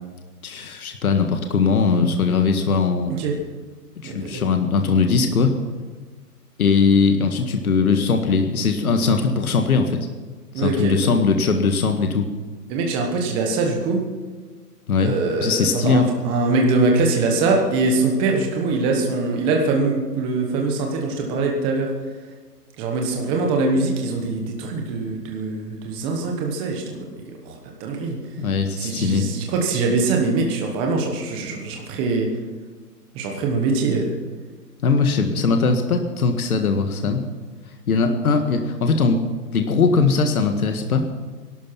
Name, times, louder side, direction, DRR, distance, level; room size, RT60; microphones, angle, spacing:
voice 1, 0.4-3.1 4.0-5.6 6.6-10.0 10.6-12.3 14.9-15.1 15.4-16.1 28.4-29.3 34.8-37.3 37.9-41.1, left 4 dB, 60° left, 5 dB, 1.8 m, -20 dB
voice 2, 4.0-4.4 10.5-10.9 12.7-14.0 15.0-21.9 22.8-27.1 27.5-27.6 27.8-28.2 28.8-32.3 33.1-34.2, right 3 dB, 10° right, 1 dB, 1.1 m, -22 dB
18.0 x 12.0 x 5.7 m, 1.4 s
hypercardioid pair, 160°, 48 cm